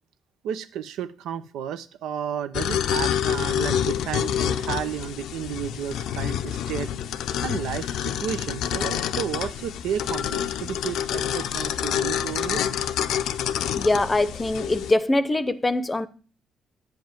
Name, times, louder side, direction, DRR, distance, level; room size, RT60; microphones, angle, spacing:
voice 1, 0.4-6.9 7.4-12.6, right 9 dB, 90° right, 0.8 m, -32 dB
sound 1, 2.5-14.9, left 9 dB, 85° left, 0.6 m, -27 dB
voice 2, 13.8-16.1, left 2 dB, 20° left, 0.7 m, -23 dB
9.2 x 5.4 x 7.4 m
cardioid pair, 90°, 0 cm